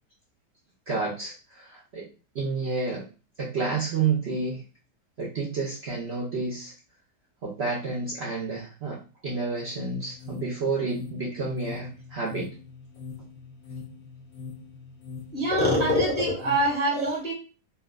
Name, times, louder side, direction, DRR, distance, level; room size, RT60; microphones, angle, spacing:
voice 1, 0.9-2.1 2.3-3.1 3.4-4.6 5.2-6.7 7.4-12.5, right 4 dB, 55° right, -4 dB, 0.7 m, -30 dB
sound 1, 9.9-16.6, left 5 dB, 65° left, 1.1 m, -43 dB
voice 2, 15.3-17.3, equal, 10° left, -4 dB, 0.7 m, -24 dB
4.4 x 2.2 x 2.3 m, 0.34 s
omnidirectional pair, 1.8 m